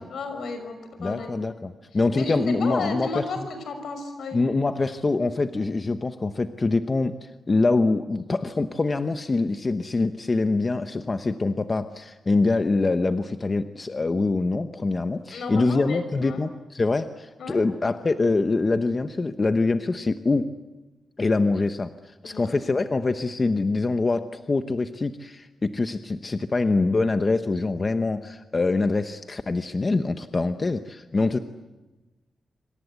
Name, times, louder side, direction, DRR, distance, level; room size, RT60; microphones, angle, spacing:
voice 1, 0.1-1.3 2.1-4.4 15.3-16.4 17.4-17.6 22.2-22.5 30.5-30.6 31.2-31.3, left 3 dB, 75° left, 7 dB, 6.0 m, -33 dB
voice 2, 1.0-3.5 4.3-20.5 21.2-31.4, left 3 dB, 25° left, 9 dB, 0.9 m, -24 dB
26.5 x 26.0 x 8.3 m, 1.1 s
wide cardioid pair, 150°, 0 cm